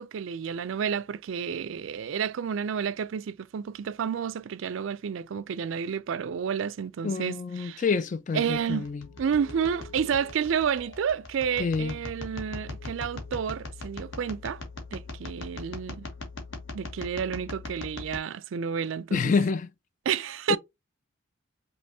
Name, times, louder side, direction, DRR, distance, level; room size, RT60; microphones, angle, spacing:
voice 1, 0.0-7.8 8.3-8.9 9.2-14.6 14.9-16.1 16.7-19.3 20.1-20.6, right 7 dB, 70° right, 0.4 m, -30 dB
voice 2, 7.0-9.1 11.6-12.0 19.1-19.7 20.5-20.6, left 5 dB, 35° left, 0.3 m, -27 dB
sound 1, 8.4-18.2, left 3 dB, 65° left, 1.3 m, -41 dB
5.3 x 3.0 x 2.7 m
head